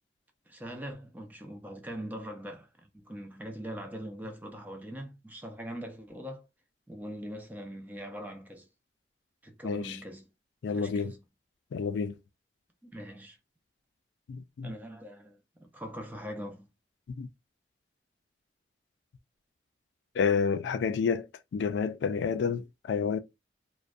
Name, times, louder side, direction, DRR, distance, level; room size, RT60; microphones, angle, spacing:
voice 1, 0.5-6.5 6.9-8.7 9.4-10.3 10.7-11.2 12.8-13.4 14.6-16.7, equal, 10° right, 0.4 m, -42 dB
voice 2, 9.6-10.0 10.6-11.1 11.7-12.2 14.3-14.7 17.2-17.3 20.1-21.3 21.5-23.2, left 6 dB, 85° left, 0.3 m, -29 dB
2.5 x 2.1 x 2.3 m
head